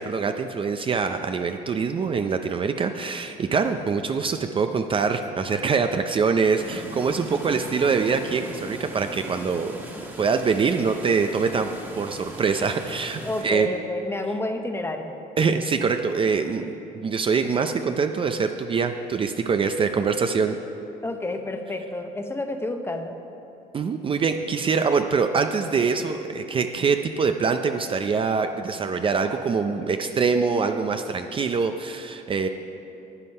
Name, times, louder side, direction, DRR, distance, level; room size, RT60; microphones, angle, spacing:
voice 1, 0.0-9.7 10.2-11.7 11.9-13.7 15.4-20.6 23.7-32.5, right 5 dB, 30° right, 7 dB, 0.5 m, -24 dB
sound 1, 6.6-13.4, right 1 dB, 15° right, 1.6 m, -39 dB
voice 2, 13.2-15.1 21.0-23.2, left 2 dB, 15° left, 6 dB, 0.8 m, -29 dB
9.8 x 9.3 x 5.5 m, 2.8 s
cardioid pair, 110°, 17 cm